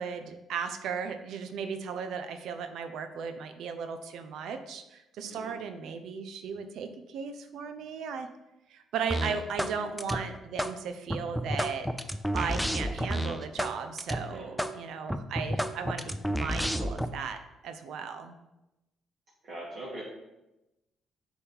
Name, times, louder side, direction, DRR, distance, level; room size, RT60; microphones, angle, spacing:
voice 1, 0.0-8.3 8.7-11.9 12.3-18.3, right 6 dB, 75° right, 7 dB, 0.5 m, -36 dB
sound 1, 9.1-9.7 10.0-10.7 11.1-13.7 14.0-14.2 14.6-14.7 15.1-17.1, equal, ahead, 0.4 m, -30 dB
voice 2, 19.4-20.0, right 1 dB, 50° right, -7 dB, 1.6 m, -42 dB
6.6 x 3.1 x 5.5 m, 0.97 s
cardioid pair, 105°, 0 cm